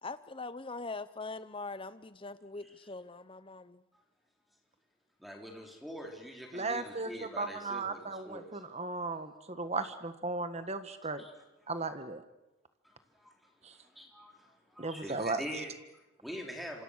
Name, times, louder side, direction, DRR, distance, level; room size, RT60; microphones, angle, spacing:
voice 1, 0.0-3.8, left 3 dB, 25° left, 14 dB, 0.8 m, -42 dB
voice 2, 5.2-8.6 11.2-11.3 12.8-16.8, equal, ahead, 1 dB, 3.6 m, -45 dB
voice 3, 6.5-11.2 11.7-12.2 13.6-13.7 14.8-15.4, right 3 dB, 30° right, 10 dB, 1.5 m, -36 dB
27.5 x 26.0 x 6.5 m, 1.0 s
head